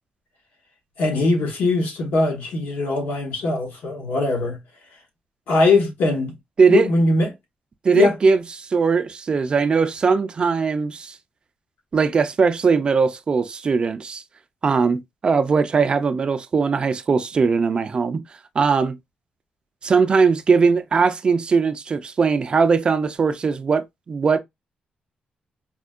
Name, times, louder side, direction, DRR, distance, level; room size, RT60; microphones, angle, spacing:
voice 1, 1.0-4.6 5.5-6.3 6.7-7.3 7.9-8.2, left 3 dB, 85° left, 1.1 m, -21 dB
voice 2, 6.6-6.9 7.8-11.2 11.9-14.2 14.6-18.2 18.6-19.0 19.8-24.4, right 5 dB, 35° right, 0.3 m, -20 dB
4.2 x 2.2 x 2.3 m
wide cardioid pair, 160°, 3 cm